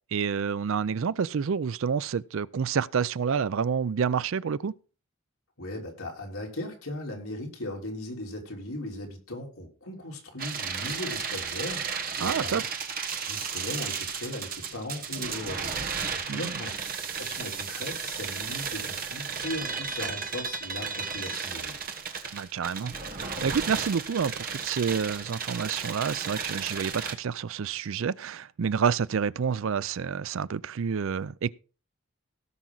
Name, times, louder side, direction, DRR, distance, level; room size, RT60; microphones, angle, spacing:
voice 1, 0.1-4.7 12.2-12.6 16.3-16.5 22.3-22.9 23.4-31.5, right 6 dB, 70° right, 0.4 m, -28 dB
voice 2, 5.6-12.6 13.2-16.7 17.2-21.8, left 1 dB, 75° left, 3.6 m, -38 dB
sound 1, 10.4-27.1, right 6 dB, 40° right, 1.2 m, -34 dB
17.5 x 6.1 x 3.9 m
head